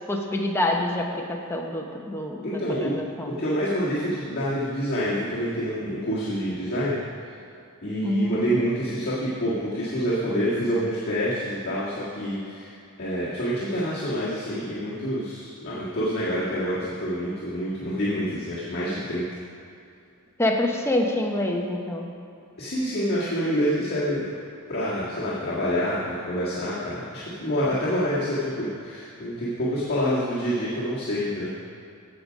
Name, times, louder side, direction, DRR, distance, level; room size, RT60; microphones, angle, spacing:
voice 1, 0.1-3.3 8.0-8.7 20.4-22.1, left 1 dB, 10° left, 1 dB, 0.9 m, -26 dB
voice 2, 2.4-2.9 3.4-7.0 7.8-12.7 13.0-19.2 22.6-24.3 24.7-31.5, equal, 45° left, -10 dB, 1.9 m, -27 dB
15.5 x 5.2 x 5.2 m, 2.5 s
head